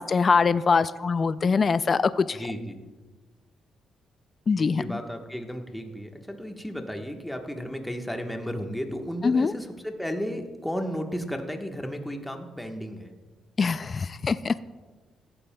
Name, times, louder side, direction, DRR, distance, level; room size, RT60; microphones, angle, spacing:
voice 1, 0.0-2.4 4.5-5.0 9.2-9.5 13.6-14.6, left 5 dB, 40° left, 15 dB, 0.3 m, -23 dB
voice 2, 2.3-2.8 4.6-13.1, equal, 5° left, 3 dB, 1.3 m, -34 dB
16.0 x 12.0 x 2.3 m, 1.3 s
cardioid pair, 90°, 0 cm